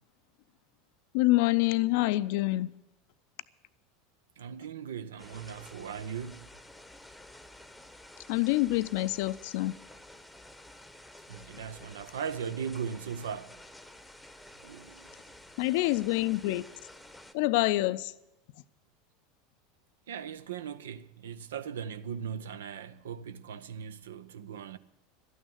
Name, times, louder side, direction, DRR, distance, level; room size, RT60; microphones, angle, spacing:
voice 1, 1.1-2.7 8.3-9.8 15.6-16.7 17.3-18.1, left 18 dB, 60° left, 0.5 m, -26 dB
voice 2, 4.4-6.5 11.3-13.6 14.6-15.0 20.1-24.8, right 7 dB, 70° right, 0.6 m, -38 dB
sound 1, 5.2-17.3, left 1 dB, ahead, 1.0 m, -51 dB
12.5 x 9.2 x 9.2 m
figure-of-eight pair, 80°, 0 cm